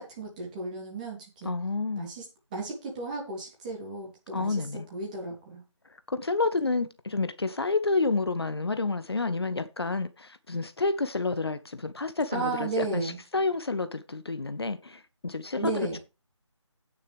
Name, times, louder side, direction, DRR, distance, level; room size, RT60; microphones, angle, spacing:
voice 1, 0.0-1.5 2.0-2.2 2.5-4.5 4.9-5.6 12.3-13.2 15.6-16.0, right 3 dB, 15° right, 3.1 m, -34 dB
voice 2, 1.4-2.1 4.3-4.9 6.1-16.0, left 3 dB, 55° left, 0.8 m, -29 dB
16.0 x 6.6 x 3.4 m
figure-of-eight pair, 160°, 16 cm